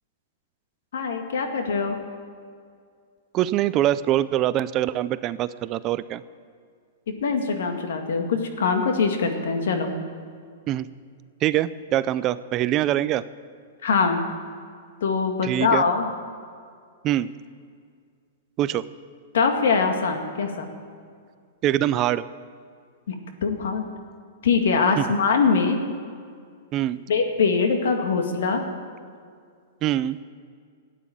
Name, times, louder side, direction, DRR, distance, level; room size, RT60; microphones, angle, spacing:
voice 1, 0.9-2.0 7.1-9.9 13.8-14.2 15.0-16.0 19.3-20.7 23.1-23.2 23.4-23.8 24.4-25.8 27.1-28.6, left 5 dB, 80° left, 5 dB, 2.1 m, -23 dB
voice 2, 3.3-6.2 10.7-10.9 11.4-13.2 15.4-15.8 17.0-17.3 18.6-18.8 21.6-22.3 25.0-25.1 26.7-27.0 29.8-30.2, right 13 dB, 30° right, 16 dB, 0.4 m, -23 dB
14.0 x 9.3 x 8.8 m, 2.2 s
hypercardioid pair, 155°, 0 cm